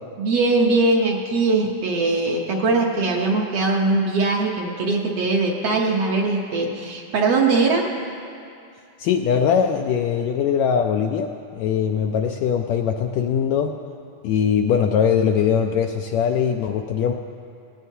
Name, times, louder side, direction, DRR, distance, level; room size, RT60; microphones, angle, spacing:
voice 1, 0.2-7.9, right 3 dB, 65° right, 0 dB, 1.7 m, -21 dB
voice 2, 9.0-13.7 14.2-17.1, left 7 dB, 80° left, 4 dB, 1.6 m, -21 dB
19.0 x 17.5 x 2.8 m, 2.5 s
omnidirectional pair, 3.6 m